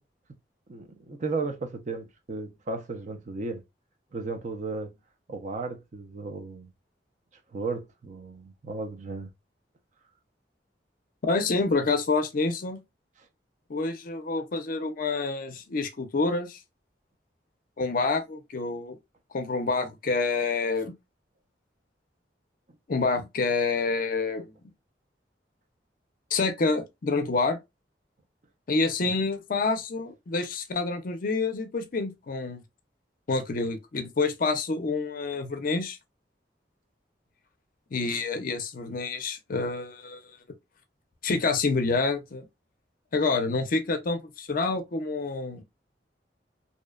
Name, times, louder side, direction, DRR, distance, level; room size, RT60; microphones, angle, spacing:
voice 1, 0.7-3.6 4.1-4.9 5.3-6.7 7.5-9.3 29.0-29.1, right 3 dB, 45° right, 0.5 m, -34 dB
voice 2, 11.2-12.8 13.7-16.6 17.8-19.0 19.3-20.9 22.9-24.5 26.3-27.6 28.7-32.6 33.3-36.0 37.9-40.2 41.2-42.5 43.1-45.6, left 3 dB, 50° left, 0.5 m, -27 dB
2.7 x 2.1 x 2.3 m
head